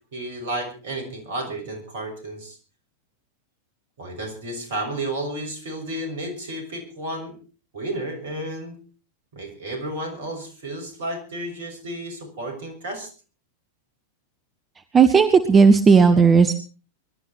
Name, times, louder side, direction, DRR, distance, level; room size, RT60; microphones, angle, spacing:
voice 1, 0.1-2.6 4.0-7.4 7.7-8.8 9.3-13.1, right 1 dB, 55° right, 5 dB, 6.5 m, -32 dB
voice 2, 14.9-16.5, right 5 dB, 20° right, 9 dB, 1.3 m, -14 dB
23.0 x 12.0 x 4.5 m, 0.37 s
figure-of-eight pair, 90°, 0 cm